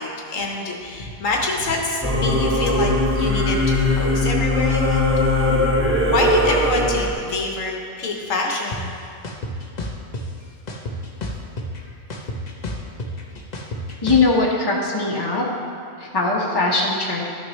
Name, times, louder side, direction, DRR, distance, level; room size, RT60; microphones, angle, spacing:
voice 1, 0.0-5.1 6.1-8.9 11.9-12.0, left 3 dB, 70° left, 0 dB, 1.3 m, -26 dB
Singing / Musical instrument, 2.0-7.1, left 1 dB, 15° right, 0.6 m, -20 dB
sound 1, 8.7-8.8 9.2-10.2 10.7-11.8 12.1-14.3, left 1 dB, 40° left, 0.7 m, -30 dB
voice 2, 14.0-15.4 16.0-17.2, left 3 dB, 20° left, -4 dB, 1.1 m, -20 dB
13.0 x 6.2 x 3.1 m, 2.5 s
omnidirectional pair, 1.4 m